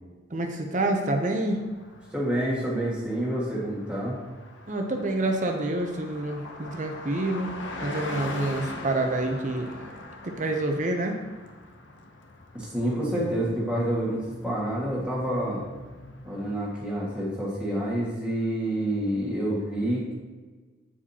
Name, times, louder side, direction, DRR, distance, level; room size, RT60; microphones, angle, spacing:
voice 1, 0.3-1.6 4.7-7.5 7.8-9.7 10.2-11.1, right 2 dB, 40° right, 4 dB, 0.6 m, -27 dB
Car passing by, 1.3-17.4, left 2 dB, 70° left, 0.8 m, -41 dB
voice 2, 2.1-4.2 12.5-15.6 16.2-20.1, right 1 dB, 5° right, -7 dB, 1.7 m, -28 dB
8.3 x 4.9 x 2.8 m, 1.4 s
head